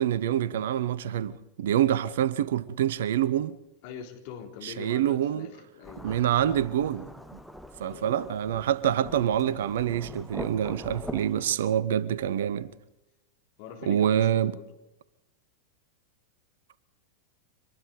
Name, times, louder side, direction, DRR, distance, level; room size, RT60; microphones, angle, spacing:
voice 1, 0.0-3.5 4.6-5.5 6.0-7.4 7.8-12.7 13.9-14.6, right 10 dB, 60° right, 0.8 m, -26 dB
voice 2, 3.8-6.2 7.8-8.1 13.6-14.7, left 7 dB, 50° left, 3.6 m, -43 dB
Thunderstorm / Rain, 5.8-11.6, equal, ahead, 1.1 m, -43 dB
25.0 x 20.0 x 5.2 m
figure-of-eight pair, 90°, 0 cm